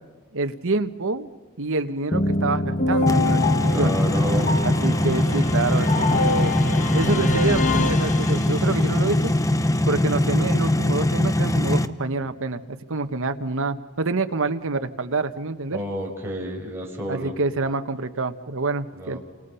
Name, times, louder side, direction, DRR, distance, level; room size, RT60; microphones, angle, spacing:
voice 1, 0.3-1.3 1.6-3.9 4.6-6.7 6.9-9.3 9.9-15.8 17.1-19.2, right 3 dB, 65° right, 9 dB, 1.2 m, -27 dB
sound 1, 2.1-8.9, left 2 dB, 35° left, 1.1 m, -26 dB
sound 2, 3.1-11.9, left 1 dB, 15° left, 0.8 m, -21 dB
voice 2, 3.6-4.6 15.7-17.4 18.9-19.2, equal, 10° right, -2 dB, 5.6 m, -30 dB
29.5 x 26.5 x 5.6 m, 1.4 s
head